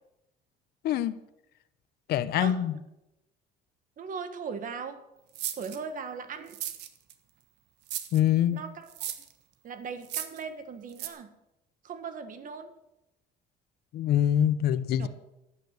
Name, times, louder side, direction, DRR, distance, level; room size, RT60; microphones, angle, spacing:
voice 1, 0.8-1.2 2.1-2.7 8.1-8.6 13.9-15.1, left 10 dB, 70° left, 13 dB, 0.8 m, -24 dB
voice 2, 4.0-5.0 5.6-6.6 8.5-9.1 9.6-11.3 11.8-12.7 15.0-15.1, right 5 dB, 55° right, 10 dB, 1.8 m, -38 dB
sound 1, 5.4-5.8 6.5-7.1 7.9-8.2 8.9-9.3 10.0-10.4 11.0-11.1, right 12 dB, 85° right, 1.3 m, -35 dB
12.5 x 9.2 x 8.3 m, 0.90 s
cardioid pair, 110°, 17 cm